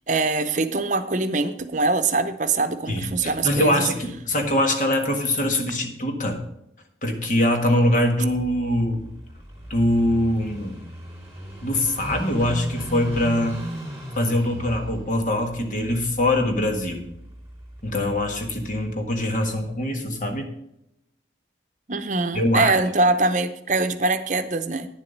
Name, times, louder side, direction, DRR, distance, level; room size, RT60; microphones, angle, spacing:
voice 1, 0.1-3.9 21.9-24.9, right 3 dB, 45° right, 10 dB, 0.8 m, -23 dB
voice 2, 2.9-6.4 7.0-9.1 9.7-10.8 11.6-13.6 14.1-17.0 17.8-20.5 22.3-22.7, left 1 dB, 45° left, 4 dB, 1.6 m, -23 dB
Car passing by / Idling, 8.3-18.9, equal, 10° right, 4.3 m, -37 dB
9.9 x 7.5 x 5.2 m, 0.82 s
head